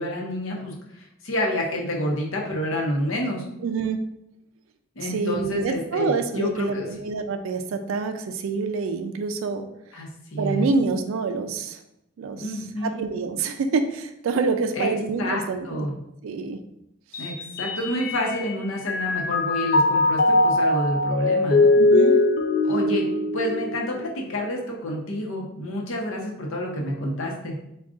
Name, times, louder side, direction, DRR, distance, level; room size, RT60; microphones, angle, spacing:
voice 1, 0.0-3.5 5.0-6.9 9.9-10.7 12.4-13.0 14.8-14.9 15.2-15.9 17.2-21.7 22.7-23.0 23.3-27.6, left 1 dB, 85° left, 0 dB, 0.8 m, -28 dB
voice 2, 3.6-4.0 5.0-9.7 10.4-11.8 12.2-15.9 16.2-16.6 17.1-17.2 21.8-22.1, right 4 dB, 80° right, 7 dB, 0.3 m, -27 dB
Mallet percussion, 17.1-18.5 18.9-24.3, left 2 dB, 45° left, 0.3 m, -21 dB
3.6 x 2.3 x 3.7 m, 0.81 s
head